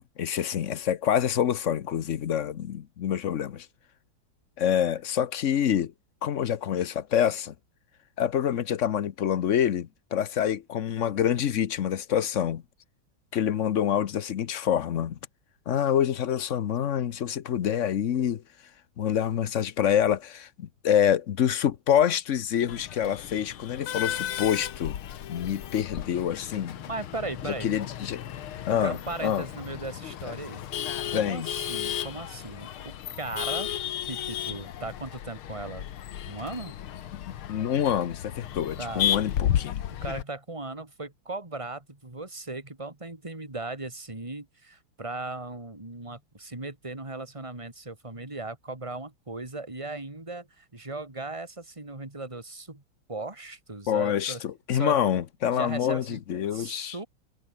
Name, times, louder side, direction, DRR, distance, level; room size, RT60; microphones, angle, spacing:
voice 1, 0.0-3.7 4.6-5.9 6.2-7.5 8.2-12.6 13.3-15.2 15.7-18.4 19.0-25.0 25.3-26.8 27.6-28.2 28.7-29.4 31.1-31.5 37.5-39.8 53.9-57.0, left 9 dB, 60° left, 0.8 m, -26 dB
Male speech man speaking / Laughter / Chatter, 22.7-40.2, left 11 dB, 85° left, 2.1 m, -34 dB
voice 2, 26.9-27.7 28.7-30.6 31.1-33.7 34.1-35.9 36.2-36.8 38.8-39.1 39.4-39.5 40.0-52.8 53.1-54.4 54.7-55.0 55.5-56.2 56.5-57.1, right 2 dB, 15° right, 3.3 m, -37 dB
omnidirectional pair, 2.3 m